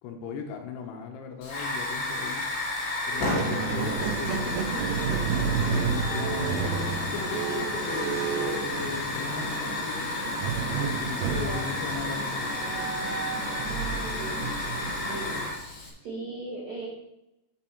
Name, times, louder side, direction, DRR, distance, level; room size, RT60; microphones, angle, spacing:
voice 1, 0.0-2.5 3.1-4.9 5.7-10.1 10.8-12.3, left 6 dB, 75° left, 4 dB, 2.8 m, -38 dB
Hiss / Fire, 1.4-15.9, left 1 dB, 50° left, 2.5 m, -31 dB
Squeak, 3.1-9.5 10.4-15.6, right 7 dB, 80° right, 2.4 m, -32 dB
voice 2, 11.2-11.7 13.7-14.5 15.1-15.5 16.0-16.9, right 2 dB, 50° right, -8 dB, 2.7 m, -38 dB
8.1 x 7.1 x 4.5 m, 0.90 s
omnidirectional pair, 4.9 m